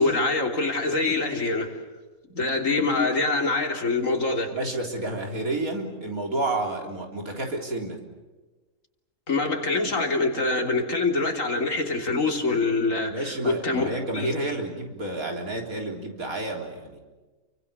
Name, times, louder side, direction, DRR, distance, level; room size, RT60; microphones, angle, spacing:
voice 1, 0.0-1.7 2.3-4.5 9.3-13.9 14.1-14.3, left 3 dB, 60° left, 3 dB, 3.6 m, -24 dB
voice 2, 4.5-8.0 13.1-17.0, right 2 dB, 70° right, 2 dB, 4.1 m, -30 dB
30.0 x 24.0 x 7.0 m, 1.2 s
omnidirectional pair, 1.6 m